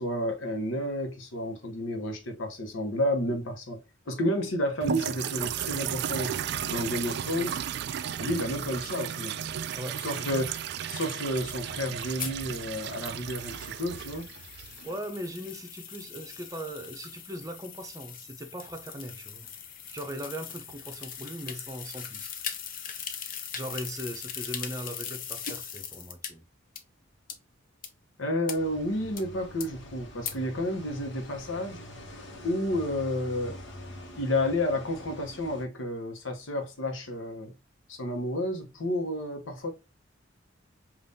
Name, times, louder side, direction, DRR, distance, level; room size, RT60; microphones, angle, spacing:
voice 1, 0.0-3.8 4.1-6.3 6.7-7.6 8.2-9.4 10.0-10.6 10.9-14.3 28.2-31.8 32.4-33.6 34.2-37.5 37.9-39.7, left 1 dB, 90° left, 1.0 m, -31 dB
sound 1, 4.8-15.0, right 9 dB, 55° right, 0.3 m, -34 dB
voice 2, 9.7-10.3 14.8-19.5 19.9-22.3 23.5-26.4, equal, 15° right, 0.6 m, -39 dB
sound 2, 12.2-26.3 26.8-26.9 27.3-27.4 27.8-27.9 28.5-28.6 29.2-29.3 29.6-29.7 30.2-30.3, left 8 dB, 45° left, 0.6 m, -40 dB
sound 3, 28.6-35.6, left 1 dB, 65° left, 1.2 m, -45 dB
5.3 x 2.5 x 2.7 m
head